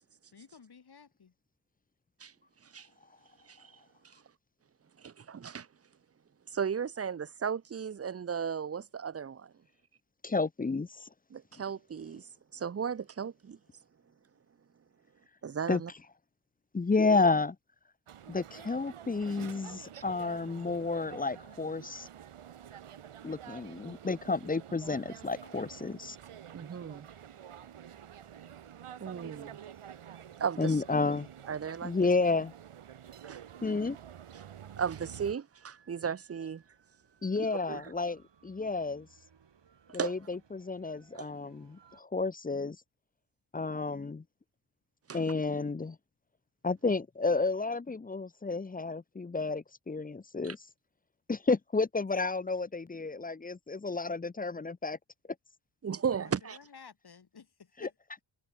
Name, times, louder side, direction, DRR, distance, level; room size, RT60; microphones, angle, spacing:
voice 1, 0.3-1.3 52.2-52.3 56.2-57.9, left 6 dB, 50° left, 5.6 m, -53 dB
voice 2, 5.0-5.7 6.5-9.5 11.3-12.2 12.5-13.6 15.4-15.9 19.9-20.0 26.5-27.1 29.0-29.6 30.4-30.8 31.5-32.0 33.2-33.4 34.3-34.4 34.8-36.6 37.7-37.9 39.9-40.1 41.1-41.3 45.1-45.2 50.4-50.5 55.8-56.6, right 7 dB, 30° right, 0.7 m, -35 dB
voice 3, 10.2-11.1 15.7-15.8 16.7-17.6 18.3-22.1 23.2-26.2 30.6-31.3 31.8-32.5 33.6-34.0 37.2-39.1 39.9-42.8 43.5-44.2 45.1-46.0 46.6-50.6 51.3-55.0 57.8-57.9, left 3 dB, 15° left, 0.6 m, -31 dB
sound 1, 18.1-35.3, right 9 dB, 90° right, 7.1 m, -49 dB
sound 2, 35.5-42.0, right 7 dB, 55° right, 7.6 m, -63 dB
wide cardioid pair, 110°, 50 cm